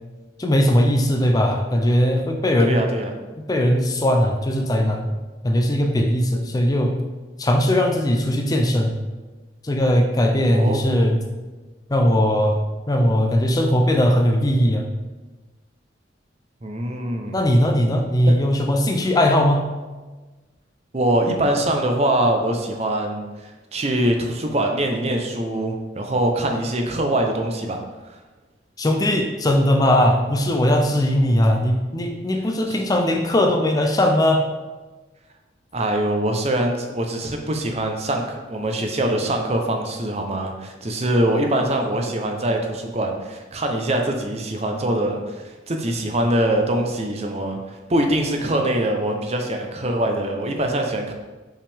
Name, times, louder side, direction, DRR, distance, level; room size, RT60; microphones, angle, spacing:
voice 1, 0.4-2.9 3.4-5.1 5.4-7.0 7.4-9.0 9.6-11.2 11.9-12.6 12.9-14.8 17.3-19.6 28.8-34.4, left 1 dB, 20° left, 3 dB, 0.4 m, -19 dB
voice 2, 2.6-3.1 10.4-11.2 16.6-17.5 20.9-27.8 28.1-28.2 32.7-32.8 35.7-47.6 47.9-51.1, right 1 dB, 35° right, 3 dB, 0.7 m, -23 dB
5.5 x 5.2 x 3.5 m, 1.2 s
head